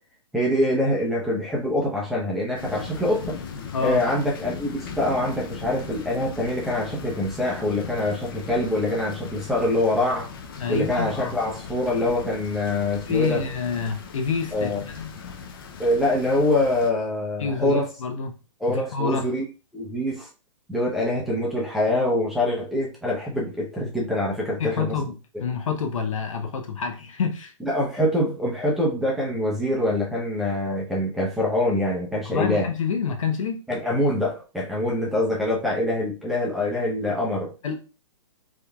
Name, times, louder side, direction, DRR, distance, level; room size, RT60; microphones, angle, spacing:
voice 1, 0.3-3.4 3.8-10.3 10.7-13.4 14.5-14.8 15.8-17.9 18.6-19.4 19.7-20.3 20.7-24.9 27.6-32.7 33.7-37.5, left 1 dB, ahead, 0.6 m, -24 dB
sound 1, 2.6-16.9, left 6 dB, 45° left, 0.5 m, -38 dB
voice 2, 10.6-11.3 13.1-15.1 17.4-18.3 18.7-19.3 24.6-25.1 25.4-27.5 32.3-33.6 37.6-37.8, left 5 dB, 80° left, 0.9 m, -27 dB
3.7 x 3.1 x 2.2 m
hypercardioid pair, 155°, 17 cm